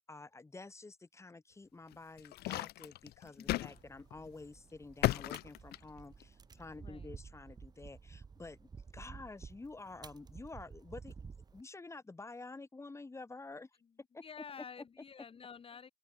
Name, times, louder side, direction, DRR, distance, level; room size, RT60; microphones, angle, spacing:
voice 1, 0.0-13.7 14.1-14.2, left 3 dB, 15° left, 2.7 m, -50 dB
sound 1, 1.9-3.7 4.1-4.3 5.0-6.2, left 16 dB, 70° left, 0.6 m, -35 dB
voice 2, 3.4-3.8 6.8-7.1 14.2-15.9, left 6 dB, 35° left, 1.6 m, -50 dB
sound 2, 3.7-11.6, right 5 dB, 25° right, 0.8 m, -52 dB
open air
cardioid pair, 110°, 17 cm